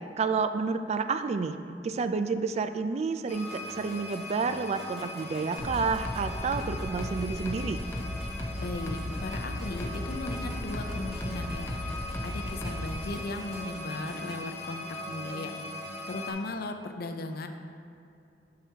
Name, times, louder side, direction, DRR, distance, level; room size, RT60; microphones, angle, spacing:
voice 1, 0.2-1.6 1.8-7.8, right 4 dB, 40° right, 10 dB, 0.3 m, -30 dB
sound 1, 3.3-16.3, left 1 dB, 40° left, 0.9 m, -40 dB
sound 2, 3.4-14.4, equal, 5° right, 1.7 m, -50 dB
sound 3, 5.6-13.1, left 1 dB, 15° left, 0.7 m, -36 dB
voice 2, 8.6-15.8 16.1-17.5, left 2 dB, 60° left, 6 dB, 0.5 m, -37 dB
10.5 x 5.8 x 2.8 m, 2.5 s
head